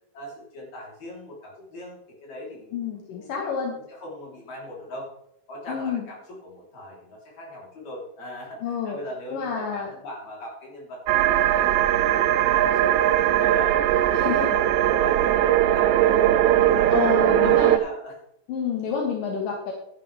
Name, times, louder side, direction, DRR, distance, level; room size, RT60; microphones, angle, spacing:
voice 1, 0.1-3.6 3.9-5.1 5.5-12.2 12.5-16.1 16.5-18.2, left 1 dB, 55° left, -3 dB, 4.9 m, -40 dB
voice 2, 2.7-3.8 5.7-6.0 8.6-9.0 9.3-9.9 14.1-14.5 16.9-17.8 18.5-19.7, left 6 dB, 80° left, 0 dB, 3.1 m, -28 dB
sound 1, 11.1-17.8, right 12 dB, 85° right, 1.5 m, -20 dB
12.5 x 11.0 x 3.4 m, 0.77 s
omnidirectional pair, 3.9 m